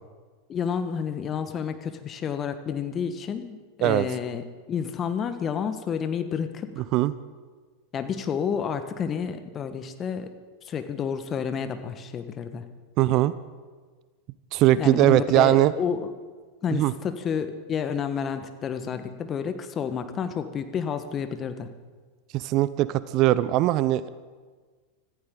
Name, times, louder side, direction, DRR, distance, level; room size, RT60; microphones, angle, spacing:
voice 1, 0.5-6.7 7.9-10.3 10.6-12.6 14.8-16.0 16.6-21.7, left 7 dB, 30° left, 9 dB, 1.4 m, -30 dB
voice 2, 6.8-7.2 13.0-13.3 14.5-15.7 16.7-16.9 22.3-24.1, right 15 dB, 45° right, 17 dB, 0.6 m, -21 dB
25.5 x 14.5 x 3.9 m, 1.5 s
hypercardioid pair, 90°, 0 cm